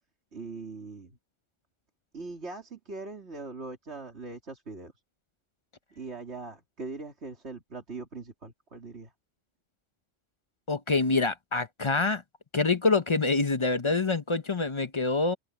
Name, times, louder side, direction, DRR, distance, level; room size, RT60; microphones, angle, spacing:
voice 1, 0.3-1.1 2.1-4.9 6.0-9.1, right 3 dB, 60° right, 3.4 m, -41 dB
voice 2, 10.7-12.2 12.5-15.4, left 3 dB, 30° left, 0.7 m, -26 dB
open air
omnidirectional pair, 1.3 m